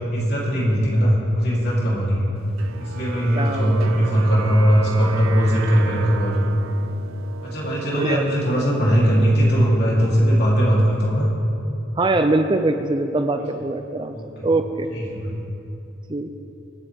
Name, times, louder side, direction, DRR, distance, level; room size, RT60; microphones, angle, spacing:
voice 1, 0.1-2.3 2.8-6.5 7.4-11.3 14.1-14.5 14.9-15.4, equal, 50° left, -6 dB, 3.3 m, -19 dB
sound 1, 2.6-9.4, right 6 dB, 80° right, 0.5 m, -35 dB
voice 2, 3.4-3.9 7.9-8.3 12.0-14.2 14.4-14.9 16.1-16.3, right 2 dB, 25° right, 7 dB, 0.4 m, -22 dB
24.0 x 8.6 x 3.5 m, 2.8 s
head